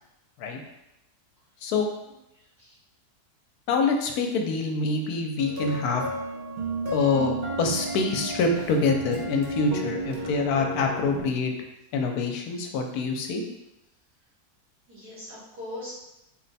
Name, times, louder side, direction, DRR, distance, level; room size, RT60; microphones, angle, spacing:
voice 1, 2.3-2.8 14.9-15.9, left 1 dB, 75° right, -8 dB, 2.1 m, -40 dB
voice 2, 3.7-6.0 6.9-11.5 11.9-13.4, left 4 dB, 75° left, 3 dB, 1.1 m, -25 dB
sound 1, 5.4-11.2, right 2 dB, 55° right, 0.9 m, -33 dB
4.3 x 2.2 x 4.0 m, 0.91 s
omnidirectional pair, 1.7 m